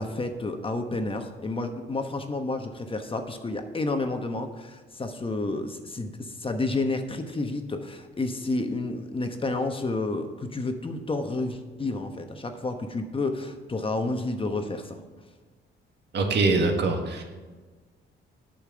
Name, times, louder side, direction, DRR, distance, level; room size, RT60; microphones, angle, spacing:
voice 1, 0.0-15.0, left 2 dB, 25° left, 6 dB, 1.1 m, -30 dB
voice 2, 16.1-17.2, right 3 dB, 60° right, 3 dB, 1.8 m, -23 dB
8.4 x 5.7 x 7.8 m, 1.3 s
cardioid pair, 90°, 20 cm